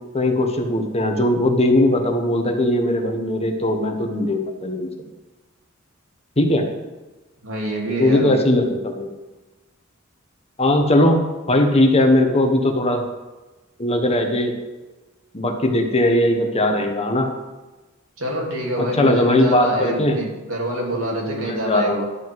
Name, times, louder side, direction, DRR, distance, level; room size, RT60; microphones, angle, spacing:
voice 1, 0.1-4.9 6.4-6.7 8.0-9.1 10.6-11.2 11.5-13.0 13.8-14.5 15.3-17.3 18.8-20.2 20.9-22.0, left 1 dB, 30° left, 4 dB, 1.2 m, -19 dB
voice 2, 7.4-8.4 18.2-22.0, right 1 dB, 75° right, -2 dB, 2.8 m, -26 dB
11.5 x 5.2 x 7.6 m, 1.1 s
head